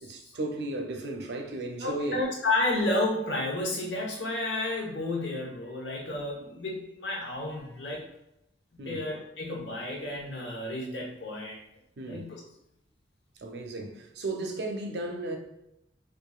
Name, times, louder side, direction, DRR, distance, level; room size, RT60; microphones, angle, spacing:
voice 1, 0.0-2.2 8.8-9.0 12.0-12.2 13.4-15.4, right 2 dB, 65° right, 0.6 m, -34 dB
voice 2, 1.8-8.0 8.8-11.6 12.0-12.4, left 2 dB, 80° left, 1.1 m, -31 dB
4.6 x 2.5 x 2.4 m
head